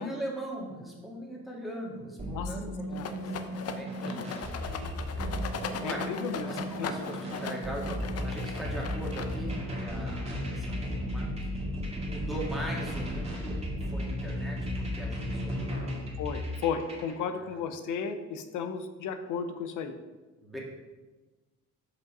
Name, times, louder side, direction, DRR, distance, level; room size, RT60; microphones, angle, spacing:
voice 1, 0.0-4.3 4.7-6.1 6.4-13.6 13.9-15.7 17.3-17.6 20.4-20.6, right 1 dB, ahead, -3 dB, 2.0 m, -41 dB
sound 1, 2.2-17.1, equal, 20° right, 2.0 m, -35 dB
Rattle, 2.9-9.6, left 5 dB, 55° left, 0.7 m, -39 dB
voice 2, 5.8-6.5 6.8-7.1 16.2-19.9, left 6 dB, 85° left, 8 dB, 0.8 m, -34 dB
5.2 x 5.2 x 5.3 m, 1.2 s
cardioid pair, 90°, 30 cm